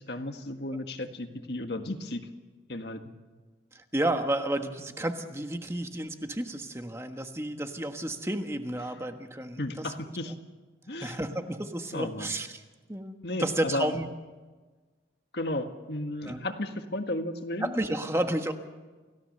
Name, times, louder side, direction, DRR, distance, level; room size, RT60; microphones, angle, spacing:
voice 1, 0.0-2.2 2.7-3.1 9.6-10.3 10.9-11.2 11.9-12.3 13.2-14.0 15.3-17.8, left 1 dB, 60° left, 6 dB, 1.7 m, -34 dB
voice 2, 3.7-9.9 11.0-12.6 12.9-14.1 16.2-16.4 17.6-18.5, right 1 dB, 15° right, 6 dB, 1.3 m, -31 dB
29.0 x 17.0 x 6.7 m, 1.3 s
head